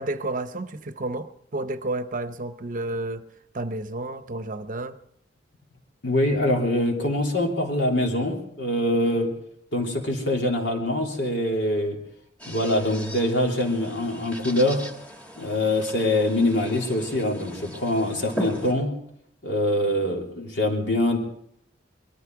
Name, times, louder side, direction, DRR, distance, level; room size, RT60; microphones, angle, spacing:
voice 1, 0.0-3.2 3.5-5.0, right 2 dB, 45° right, 0.8 m, -31 dB
voice 2, 6.0-9.3 9.7-12.0 12.4-14.9 15.4-18.9 19.4-21.2, left 1 dB, 70° left, 3.4 m, -24 dB
sound 1, 12.4-18.7, equal, 10° left, 1.8 m, -38 dB
21.5 x 13.5 x 4.7 m
head